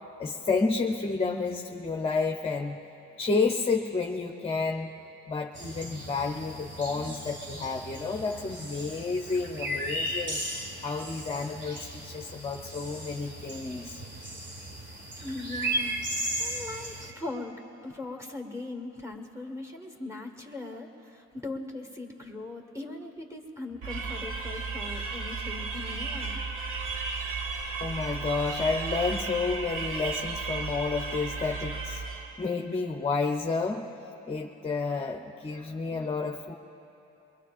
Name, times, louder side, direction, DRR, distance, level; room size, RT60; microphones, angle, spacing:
voice 1, 0.2-2.8 3.2-4.9 5.3-14.0 27.8-33.8 34.3-36.5, left 4 dB, 20° left, 2 dB, 0.7 m, -30 dB
sound 1, 5.5-17.1, right 1 dB, 40° right, 1.7 m, -36 dB
voice 2, 15.2-17.5 17.8-26.4, left 2 dB, 10° right, 1 dB, 1.7 m, -40 dB
sound 2, 23.8-32.4, right 4 dB, 85° right, 1.4 m, -34 dB
23.0 x 21.5 x 2.5 m, 3.0 s
cardioid pair, 90°, 30 cm